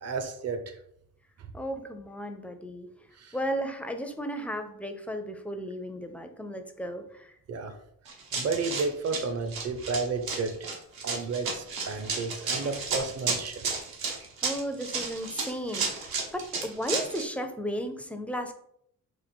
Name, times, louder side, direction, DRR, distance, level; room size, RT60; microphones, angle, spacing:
voice 1, 0.0-0.6 3.2-3.3 7.5-7.7 8.3-10.5 11.0-13.5, right 4 dB, 45° right, 7 dB, 0.7 m, -32 dB
voice 2, 1.5-2.9 3.3-7.3 14.4-16.1 16.3-18.5, equal, 5° left, 6 dB, 0.4 m, -34 dB
Run, 8.1-17.3, right 4 dB, 85° right, 1.2 m, -32 dB
4.3 x 2.7 x 4.4 m, 0.71 s
cardioid pair, 130°, 35 cm